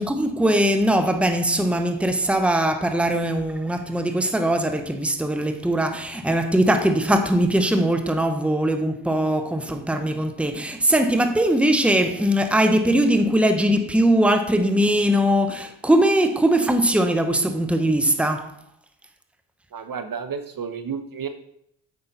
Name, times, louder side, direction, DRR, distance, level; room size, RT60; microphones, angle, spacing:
voice 1, 0.0-18.5, right 1 dB, ahead, 1.0 m, -21 dB
voice 2, 19.7-21.3, right 6 dB, 45° right, 0.9 m, -31 dB
8.0 x 5.6 x 4.0 m
hypercardioid pair, 40°, 48 cm